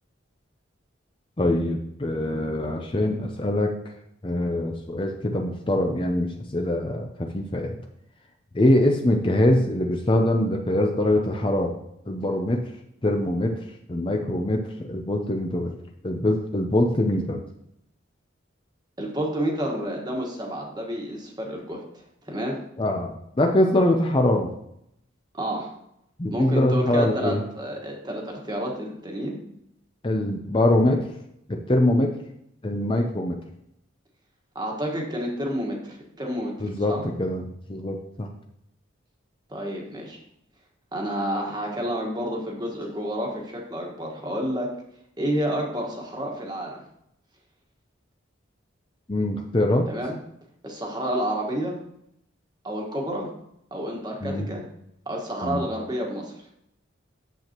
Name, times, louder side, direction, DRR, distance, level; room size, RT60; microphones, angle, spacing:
voice 1, 1.4-3.7 4.2-7.8 8.5-11.8 12.1-12.6 13.0-13.5 13.9-15.7 16.0-17.4 22.8-24.5 26.2-27.4 30.0-31.0 31.5-32.1 32.6-33.4 36.6-38.3 49.1-49.9 54.2-54.5 55.4-55.6, left 1 dB, 25° left, 2 dB, 0.6 m, -23 dB
voice 2, 19.0-21.8 22.3-22.6 25.3-25.7 26.3-29.4 34.5-37.0 39.5-40.2 40.9-44.7 45.2-46.8 49.9-50.2 50.6-51.8 52.6-53.3 53.7-54.6 55.1-56.3, equal, 20° right, 0 dB, 1.5 m, -29 dB
9.2 x 7.7 x 3.0 m, 0.77 s
head